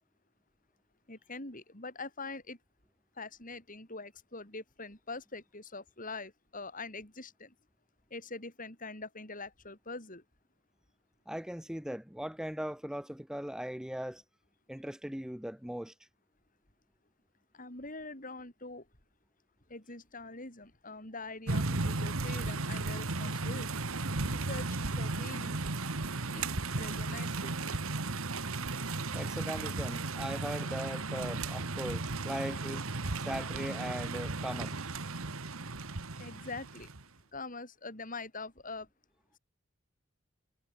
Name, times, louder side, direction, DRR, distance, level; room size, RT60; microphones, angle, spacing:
voice 1, 1.1-2.6 3.2-7.5 8.1-10.2 17.5-18.9 19.7-23.8 24.2-24.7 25.0-25.6 26.3-26.5 26.8-27.8 36.2-36.9 37.3-38.9, left 3 dB, 40° left, 7.8 m, -44 dB
voice 2, 11.3-14.2 14.7-15.9 29.1-32.8 33.3-34.8, equal, 5° right, 0.7 m, -39 dB
sound 1, 21.5-37.0, right 3 dB, 90° right, 1.8 m, -35 dB
head